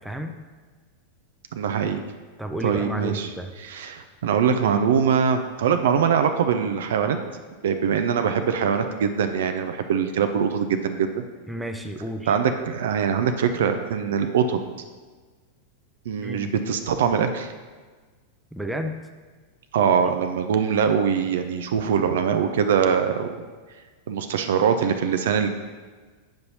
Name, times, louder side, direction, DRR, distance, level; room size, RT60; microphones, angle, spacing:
voice 1, 0.0-0.3 2.4-3.5 11.5-12.4 16.2-16.5 18.5-18.9, right 1 dB, 5° right, 4 dB, 0.5 m, -31 dB
voice 2, 1.5-2.0 2.6-3.3 3.6-7.2 7.6-11.2 12.3-14.6 16.1-17.5 19.7-23.4 24.1-25.5, right 7 dB, 60° right, 8 dB, 0.4 m, -23 dB
8.9 x 5.3 x 2.8 m, 1.4 s
figure-of-eight pair, 90°, 0 cm